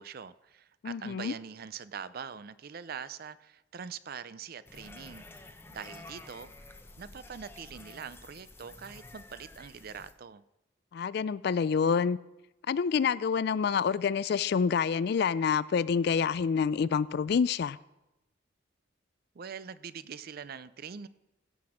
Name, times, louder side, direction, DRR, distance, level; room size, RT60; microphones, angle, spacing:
voice 1, 0.0-6.5 7.0-10.4 19.3-21.1, right 6 dB, 50° right, 0.4 m, -43 dB
voice 2, 0.8-1.3 10.9-12.2 12.7-17.8, left 6 dB, 55° left, 0.3 m, -27 dB
sound 1, 4.7-10.1, left 2 dB, 10° left, 0.7 m, -50 dB
16.0 x 6.1 x 4.9 m
head